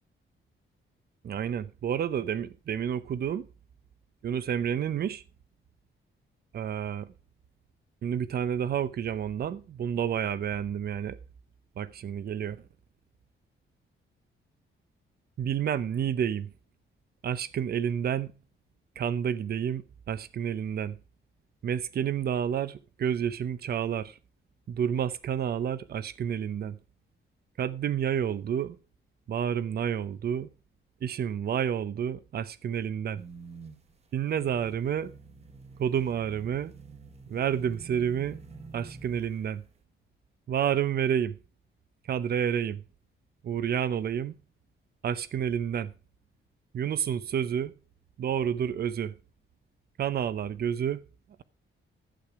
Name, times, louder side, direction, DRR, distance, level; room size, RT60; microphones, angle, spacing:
voice 1, 1.2-3.5 4.2-5.2 6.5-7.1 8.0-11.2 11.8-12.6 15.4-16.5 17.2-18.4 19.0-21.0 21.6-24.2 24.7-26.8 27.6-28.8 29.3-30.5 31.0-33.2 34.1-35.1 35.8-36.7 37.3-38.4 38.7-39.6 40.5-41.4 42.1-42.8 43.4-44.4 45.0-45.9 46.7-47.7 48.2-49.1 50.0-51.0, right 8 dB, 50° right, 0.7 m, -29 dB
sound 1, 33.2-39.6, right 4 dB, 30° right, 1.2 m, -48 dB
11.5 x 8.7 x 4.7 m
wide cardioid pair, 170°, 21 cm